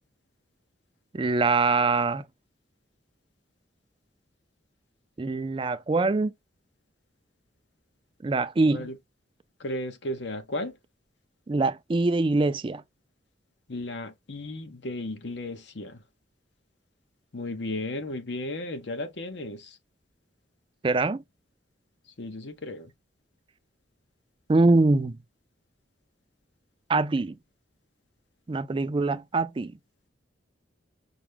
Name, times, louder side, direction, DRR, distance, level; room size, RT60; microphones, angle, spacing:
voice 1, 1.1-2.2 5.2-6.3 8.2-8.9 11.5-12.8 20.8-21.2 24.5-25.2 26.9-27.4 28.5-29.7, right 3 dB, 25° right, 0.4 m, -23 dB
voice 2, 9.6-10.8 13.7-16.0 17.3-19.8 22.2-22.9, left 1 dB, 65° left, 0.9 m, -34 dB
5.9 x 2.2 x 3.4 m
head